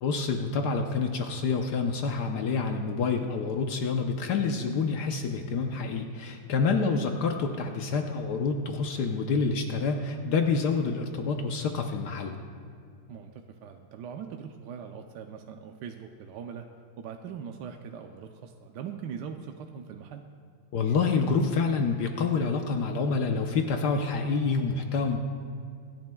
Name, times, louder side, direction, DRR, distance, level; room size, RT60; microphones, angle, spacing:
voice 1, 0.0-12.4 20.7-25.2, left 4 dB, 70° left, 4 dB, 1.3 m, -27 dB
voice 2, 13.1-16.7 17.0-20.2, right 7 dB, 80° right, 4 dB, 1.2 m, -41 dB
25.0 x 10.5 x 2.2 m, 2.4 s
omnidirectional pair, 1.9 m